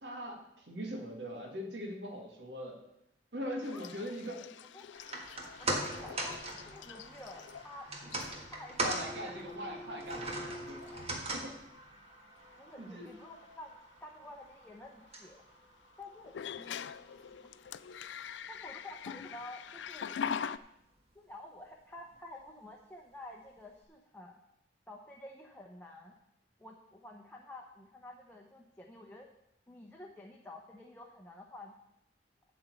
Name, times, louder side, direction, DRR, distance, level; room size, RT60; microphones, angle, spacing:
voice 1, 0.0-2.8 3.3-4.5 8.8-10.9 11.3-11.6 12.8-13.1, equal, 75° right, 2 dB, 1.9 m, -41 dB
sound 1, 3.6-7.7 8.1-8.5 9.5-9.6 10.1-10.5 10.8-11.1 13.1-13.2 16.2-20.6, left 7 dB, 75° left, 0.4 m, -43 dB
voice 2, 3.7-4.2 4.7-4.8 5.6-7.9 8.5-9.6 12.6-13.7 14.0-15.4 16.0-17.6 18.5-20.1 21.1-24.4 24.9-26.1 26.6-29.3 29.7-31.7, left 2 dB, 10° left, 0 dB, 0.8 m, -50 dB
sound 2, 4.9-17.3 17.7-17.8, right 1 dB, 35° right, 1.6 m, -41 dB
11.5 x 4.4 x 8.2 m, 0.83 s
head